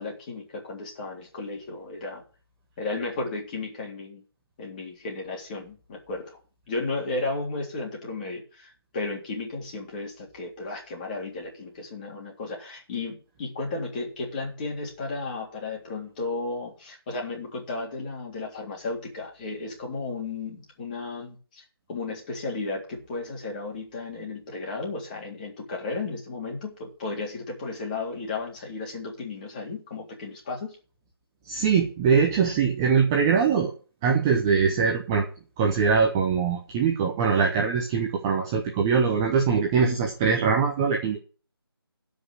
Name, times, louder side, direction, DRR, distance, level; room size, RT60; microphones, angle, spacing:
voice 1, 0.0-2.2 2.8-4.2 4.6-6.4 6.7-30.8, left 3 dB, 20° left, -1 dB, 3.5 m, -34 dB
voice 2, 31.5-33.7 34.0-35.2 35.6-41.2, right 6 dB, 10° right, 2 dB, 0.6 m, -22 dB
12.5 x 5.3 x 8.5 m, 0.38 s
figure-of-eight pair, 165°, 13 cm